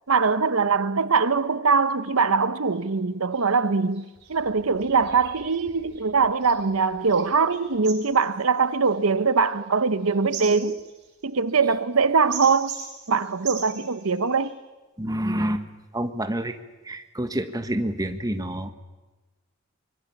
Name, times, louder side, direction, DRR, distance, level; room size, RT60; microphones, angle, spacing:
voice 1, 0.1-10.8 11.2-12.7 13.1-14.5, right 5 dB, 80° right, 0.9 m, -22 dB
sound 1, 2.7-2.9 3.3-3.5 3.9-14.5, right 7 dB, 55° right, 5.6 m, -41 dB
voice 2, 15.0-15.6 15.9-16.6 16.8-18.7, right 1 dB, 15° right, 1.3 m, -28 dB
24.5 x 22.0 x 7.3 m
head